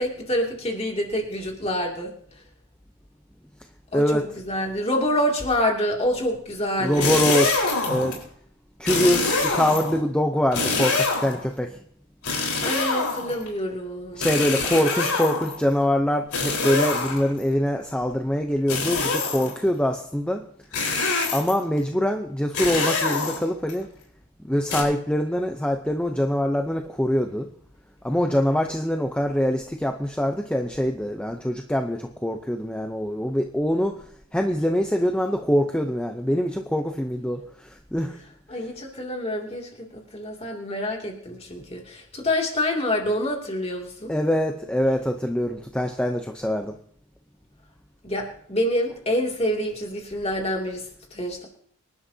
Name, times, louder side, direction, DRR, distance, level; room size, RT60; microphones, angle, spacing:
voice 1, 0.0-2.1 3.9-7.2 12.6-14.3 38.5-44.1 48.0-51.5, left 1 dB, 25° left, 1 dB, 2.6 m, -27 dB
voice 2, 3.9-4.3 6.8-8.2 8.8-11.8 14.2-20.4 21.3-23.9 24.4-27.5 28.0-34.0 34.3-38.2 44.1-46.8, equal, 5° left, 4 dB, 0.7 m, -24 dB
sound 1, 6.9-8.2 8.8-10.0 10.5-11.5 12.2-13.5 14.2-15.6 16.3-17.4 18.7-19.6 20.7-21.7 22.5-23.7 24.7-24.8, left 3 dB, 85° left, 4.4 m, -25 dB
25.0 x 11.5 x 2.8 m, 0.62 s
head